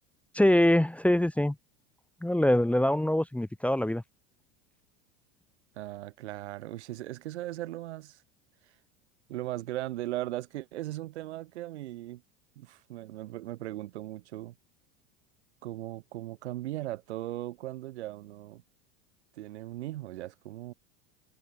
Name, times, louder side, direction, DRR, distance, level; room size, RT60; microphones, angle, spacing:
voice 1, 0.3-1.5 2.2-4.0, left 1 dB, 5° left, 1.5 m, -24 dB
voice 2, 5.8-8.2 9.3-12.2 12.6-14.5 15.6-18.6 19.4-20.7, right 15 dB, 80° right, 4.5 m, -38 dB
hypercardioid pair, 100°, 33 cm